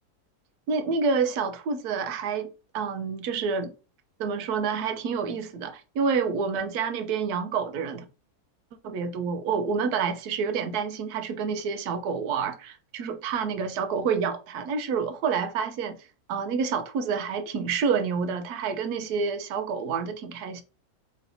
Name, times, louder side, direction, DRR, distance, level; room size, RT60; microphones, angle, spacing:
voice 1, 0.7-2.5 2.7-3.7 4.2-8.0 8.8-16.0 16.3-20.6, right 5 dB, 90° right, 1.2 m, -28 dB
4.2 x 3.3 x 2.6 m
omnidirectional pair, 1.6 m